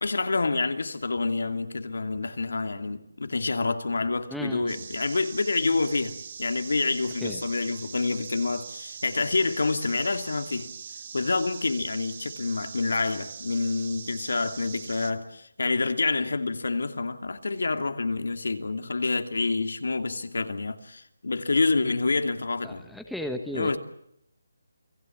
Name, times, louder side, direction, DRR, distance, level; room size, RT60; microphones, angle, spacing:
voice 1, 0.0-10.7 11.1-22.9 23.5-23.8, left 3 dB, 75° left, 2.6 m, -27 dB
voice 2, 4.3-4.7 7.2-7.4 22.6-23.8, left 1 dB, ahead, 1.1 m, -35 dB
sound 1, 4.7-15.1, right 6 dB, 30° right, 1.8 m, -42 dB
29.5 x 20.5 x 7.4 m
hypercardioid pair, 175°, 0 cm